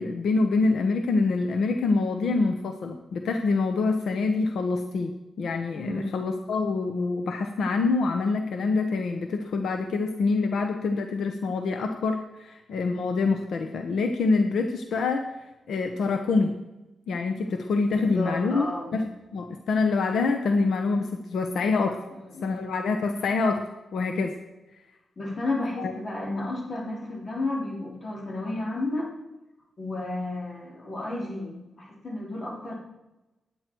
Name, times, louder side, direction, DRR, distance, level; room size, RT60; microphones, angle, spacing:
voice 1, 0.0-15.2 15.7-16.6 17.1-22.0 22.4-23.7 23.9-24.4 25.8-25.9, left 3 dB, 75° left, 5 dB, 1.1 m, -26 dB
voice 2, 5.7-6.2 17.9-18.9 22.3-22.6 25.2-29.1 29.8-32.8, left 2 dB, 35° left, -2 dB, 3.5 m, -32 dB
17.0 x 10.0 x 4.6 m, 1.0 s
wide cardioid pair, 170°, 0 cm